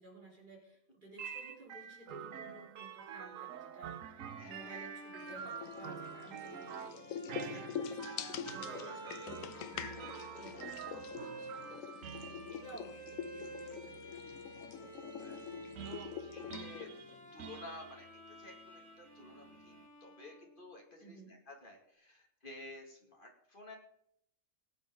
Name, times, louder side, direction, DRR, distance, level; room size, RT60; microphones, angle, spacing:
voice 1, 0.0-6.9 7.4-14.2 21.0-21.4, right 2 dB, 40° right, -4 dB, 4.0 m, -55 dB
sound 1, 1.2-19.9, right 8 dB, 85° right, 1.2 m, -48 dB
Bowed string instrument, 4.3-20.8, right 1 dB, 15° left, 2.6 m, -52 dB
voice 2, 4.4-4.8 8.8-9.0 12.0-12.2 15.2-15.5 15.8-16.9 17.3-23.8, left 1 dB, 40° left, 1 dB, 2.4 m, -52 dB
sound 2, 5.2-17.4, left 8 dB, 85° left, 1.1 m, -45 dB
18.5 x 8.4 x 3.9 m, 0.73 s
omnidirectional pair, 1.4 m